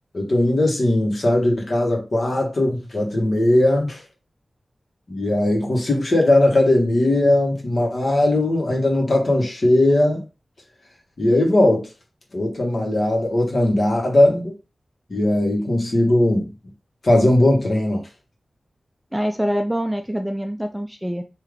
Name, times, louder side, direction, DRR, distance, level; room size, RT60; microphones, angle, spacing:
voice 1, 0.1-4.0 5.1-10.2 11.2-11.8 12.3-14.5 15.1-16.5 17.0-18.0, left 1 dB, 55° left, 1.4 m, -19 dB
voice 2, 19.1-21.2, equal, 5° right, 0.4 m, -25 dB
3.7 x 2.8 x 3.3 m
wide cardioid pair, 75°, 0 cm